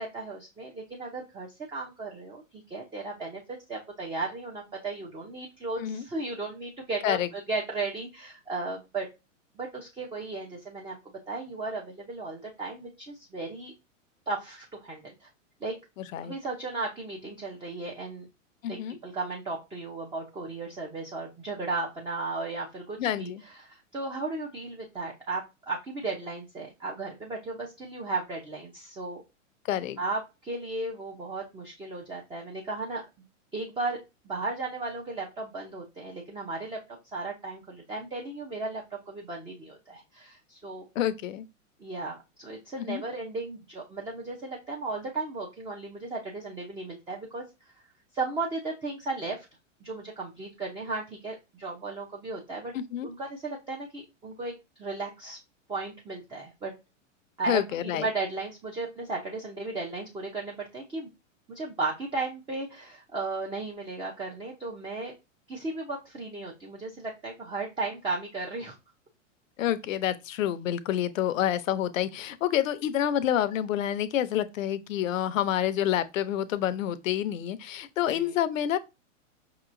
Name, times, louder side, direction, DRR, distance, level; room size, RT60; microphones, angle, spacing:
voice 1, 0.0-9.1 9.6-13.7 14.3-15.3 15.6-15.7 16.2-18.3 18.7-23.3 23.6-29.2 30.0-33.0 33.5-34.0 34.2-36.8 37.1-40.8 41.8-47.4 48.1-49.5 49.8-52.7 53.0-54.5 54.8-55.4 55.7-56.7 57.4-61.1 61.5-65.1 65.5-68.8 78.1-78.3, right 3 dB, 15° right, 0.6 m, -35 dB
voice 2, 16.0-16.3 18.6-19.0 23.0-23.4 29.7-30.0 41.0-41.5 42.8-43.0 52.7-53.1 57.5-58.1 69.6-78.8, left 11 dB, 80° left, 0.7 m, -28 dB
5.5 x 2.9 x 2.5 m
hypercardioid pair, 130°, 39 cm